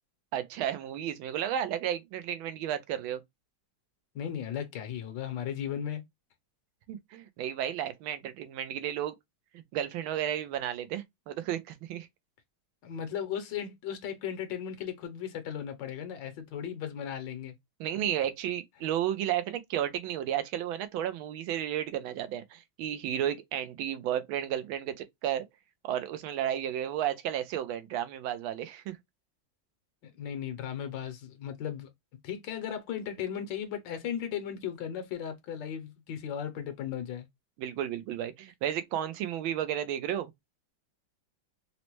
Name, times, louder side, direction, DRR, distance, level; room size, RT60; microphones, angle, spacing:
voice 1, 0.3-3.2 6.9-9.1 9.5-12.1 17.8-25.4 25.8-29.0 37.6-40.3, right 10 dB, 85° right, 1.4 m, -33 dB
voice 2, 4.1-6.0 12.8-17.5 30.0-31.9 32.2-37.3, left 9 dB, 70° left, 1.3 m, -36 dB
4.0 x 2.1 x 2.9 m
omnidirectional pair, 2.2 m